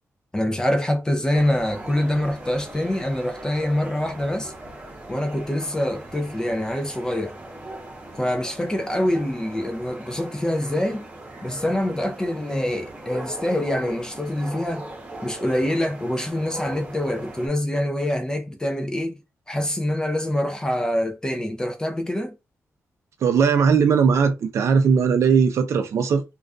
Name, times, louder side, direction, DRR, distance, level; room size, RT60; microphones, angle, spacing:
voice 1, 0.3-4.5 5.1-7.4 8.2-11.0 11.4-14.9 15.2-19.2 19.5-22.4, left 1 dB, 15° left, 0.3 m, -25 dB
sound 1, 1.3-17.5, right 1 dB, 25° right, 0.7 m, -39 dB
voice 2, 23.2-26.2, right 6 dB, 65° right, 0.4 m, -19 dB
2.3 x 2.2 x 2.4 m
wide cardioid pair, 150°, 5 cm